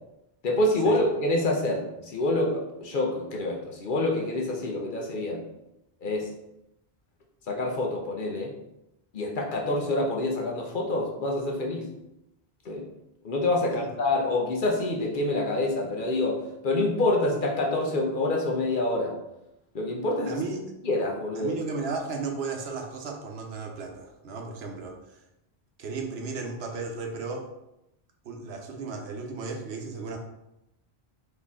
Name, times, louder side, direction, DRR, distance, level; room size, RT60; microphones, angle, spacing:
voice 1, 0.4-5.4 6.0-6.3 7.5-8.5 9.1-11.9 12.6-12.9 13.2-19.2 19.7-20.4 20.8-21.5, left 2 dB, 55° left, 0 dB, 0.9 m, -27 dB
voice 2, 20.3-20.6 21.3-25.2 25.8-27.5 28.2-30.2, right 4 dB, 75° right, 3 dB, 1.0 m, -34 dB
4.2 x 3.0 x 3.5 m, 0.87 s
omnidirectional pair, 1.1 m